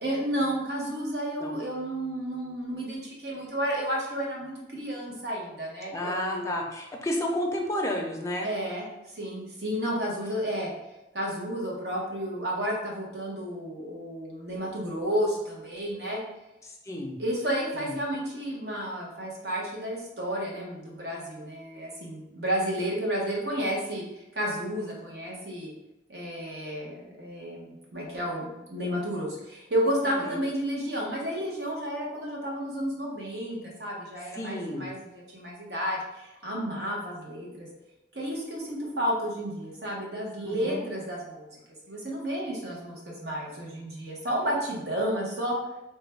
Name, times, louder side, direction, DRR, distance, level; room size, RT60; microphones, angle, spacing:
voice 1, 0.0-6.5 8.4-8.9 9.1-10.7 11.1-16.2 17.2-24.0 24.3-25.7 26.1-37.7 38.1-41.6 41.9-45.5, equal, 65° right, -3 dB, 0.9 m, -31 dB
voice 2, 5.9-8.5 16.6-17.2 17.7-18.0 30.0-30.4 34.3-34.9 40.4-40.9, left 1 dB, 20° left, 0 dB, 0.4 m, -31 dB
3.2 x 2.2 x 3.3 m, 0.95 s
head